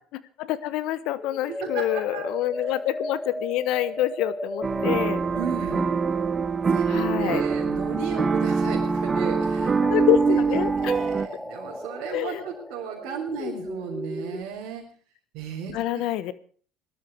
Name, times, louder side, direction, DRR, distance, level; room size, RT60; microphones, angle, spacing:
voice 1, 0.1-5.2 6.9-7.4 9.8-11.0 12.1-12.4 13.4-13.7 15.7-16.3, left 13 dB, 70° left, 15 dB, 1.2 m, -27 dB
sound 1, 1.2-14.4, equal, 5° left, 1.3 m, -36 dB
voice 2, 1.5-2.3 2.6-2.7 5.3-5.9 6.7-9.8 10.5-14.8 15.3-16.0, right 7 dB, 70° right, -2 dB, 3.7 m, -35 dB
sound 2, 4.6-11.3, right 5 dB, 30° right, 0.8 m, -24 dB
19.0 x 12.5 x 4.7 m, 0.43 s
hypercardioid pair, 75°, 0 cm